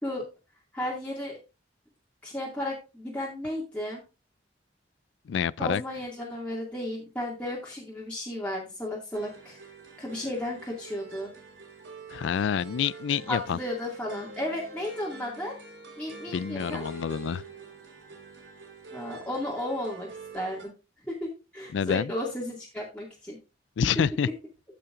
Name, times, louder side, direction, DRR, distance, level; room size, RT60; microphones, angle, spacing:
voice 1, 0.7-1.3 2.2-4.0 5.6-9.6 10.0-11.3 13.3-15.6 16.0-16.8 18.9-20.1 20.3-20.7 21.1-23.4, left 1 dB, 5° left, 2.1 m, -34 dB
voice 2, 5.3-5.8 12.1-13.6 16.3-17.4 21.7-22.1 23.8-24.3, left 7 dB, 85° left, 0.3 m, -27 dB
sound 1, 9.1-20.6, right 3 dB, 85° right, 4.2 m, -45 dB
15.5 x 5.7 x 2.5 m
head